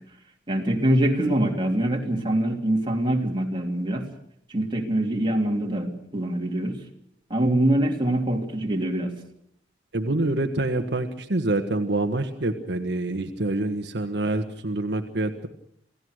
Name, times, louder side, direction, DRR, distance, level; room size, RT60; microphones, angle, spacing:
voice 1, 0.5-4.1 4.5-6.8 7.3-9.1, right 1 dB, 30° right, 1 dB, 3.0 m, -24 dB
voice 2, 9.9-15.5, right 2 dB, 70° right, 5 dB, 1.5 m, -26 dB
28.5 x 16.5 x 6.5 m, 0.72 s
head